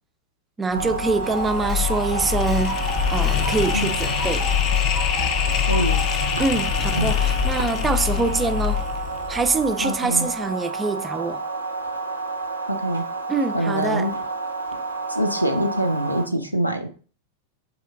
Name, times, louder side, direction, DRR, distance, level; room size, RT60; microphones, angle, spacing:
voice 1, 0.6-2.8 3.1-4.5 6.4-8.8 9.3-11.4 13.3-14.1, right 4 dB, 15° right, 0.4 m, -24 dB
sound 1, 0.7-9.8, left 9 dB, 40° left, 0.5 m, -24 dB
sound 2, 0.7-16.3, right 3 dB, 80° right, 0.5 m, -30 dB
sound 3, 1.2-6.2, left 1 dB, 15° left, 0.8 m, -36 dB
voice 2, 5.7-6.0 7.0-7.1 9.8-10.3 12.7-13.1 13.5-14.1 15.1-16.9, equal, 90° left, 0.5 m, -25 dB
3.7 x 3.0 x 3.4 m
figure-of-eight pair, 90°, 0 cm